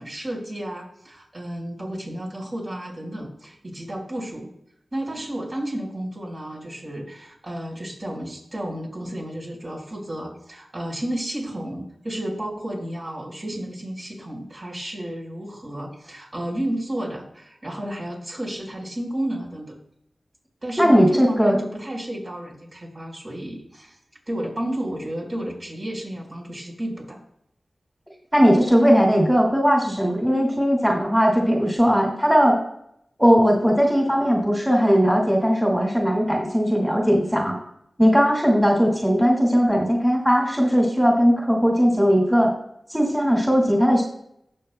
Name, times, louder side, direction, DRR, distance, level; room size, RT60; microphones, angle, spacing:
voice 1, 0.0-4.5 4.9-19.8 20.6-24.0 24.3-27.2, right 1 dB, 45° right, -3 dB, 4.1 m, -32 dB
voice 2, 20.8-21.6 28.3-32.6 33.2-37.6 38.0-42.5 42.9-44.0, equal, 5° right, -1 dB, 2.1 m, -18 dB
19.0 x 6.7 x 2.2 m, 0.74 s
cardioid pair, 55°, 0 cm